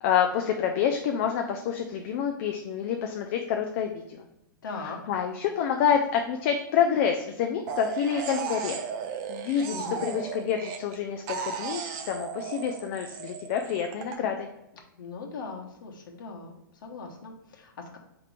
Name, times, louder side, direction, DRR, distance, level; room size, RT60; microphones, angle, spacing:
voice 1, 0.0-4.3 5.1-8.8 9.3-9.7 10.0-14.5, left 8 dB, 35° left, 4 dB, 0.4 m, -27 dB
voice 2, 4.6-5.0 9.7-10.0 15.0-16.5 16.8-18.0, left 4 dB, 70° left, 1 dB, 1.0 m, -39 dB
sound 1, 7.7-11.0 11.3-14.2, right 6 dB, 30° right, 0.4 m, -35 dB
4.8 x 2.9 x 3.4 m, 0.88 s
hypercardioid pair, 155°, 11 cm